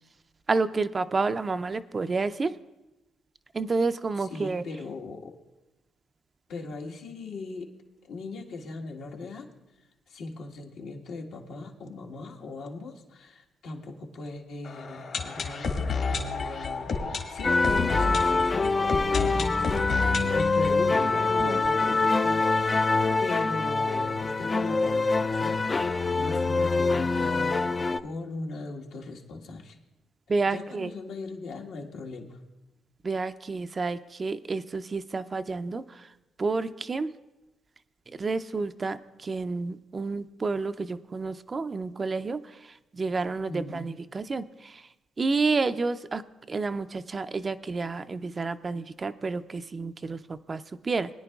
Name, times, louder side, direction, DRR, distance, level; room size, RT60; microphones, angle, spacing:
voice 1, 0.5-2.5 3.5-4.6 21.4-21.6 30.3-30.9 33.0-36.1 36.4-37.1 38.2-44.8 45.2-46.2 46.5-51.1, right 4 dB, 35° right, 11 dB, 0.4 m, -30 dB
voice 2, 4.2-5.3 6.5-7.7 8.0-9.5 10.1-22.9 23.2-27.6 28.0-29.8 30.5-32.4 43.5-43.9, left 3 dB, 75° left, -1 dB, 1.5 m, -39 dB
sound 1, 14.6-22.4 22.7-22.8 23.0-23.1 23.6-23.7, left 4 dB, 60° left, 1.7 m, -31 dB
sound 2, 17.4-28.0, left 3 dB, 30° left, 0.4 m, -25 dB
21.5 x 10.0 x 2.3 m, 1.0 s
cardioid pair, 90°, 0 cm